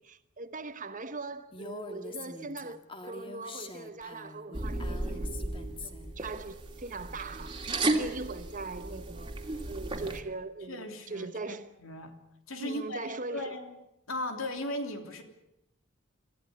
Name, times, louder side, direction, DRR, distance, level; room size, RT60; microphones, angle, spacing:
voice 1, 0.0-9.3 9.7-11.7 12.6-13.6, right 3 dB, 40° right, 1.2 m, -41 dB
Female speech woman speaking, 1.5-6.2, left 3 dB, 25° left, 2.0 m, -44 dB
sound 1, 4.5-10.2, right 2 dB, 25° right, 2.6 m, -34 dB
voice 2, 10.7-12.2 12.5-13.7 14.1-15.2, left 1 dB, 75° left, 3.3 m, -37 dB
26.5 x 14.5 x 9.7 m
head